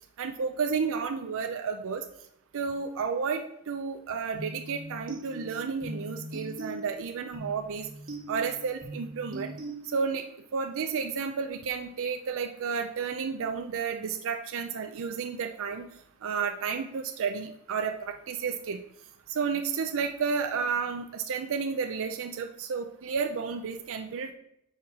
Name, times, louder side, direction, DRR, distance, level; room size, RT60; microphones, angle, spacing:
voice 1, 0.2-2.0 2.5-7.9 8.3-9.5 9.8-10.2 10.5-15.9 16.2-18.8 19.3-24.3, right 5 dB, 65° right, 5 dB, 0.5 m, -31 dB
sound 1, 4.3-10.3, right 1 dB, 40° right, 1.2 m, -41 dB
5.6 x 4.8 x 4.6 m, 0.78 s
head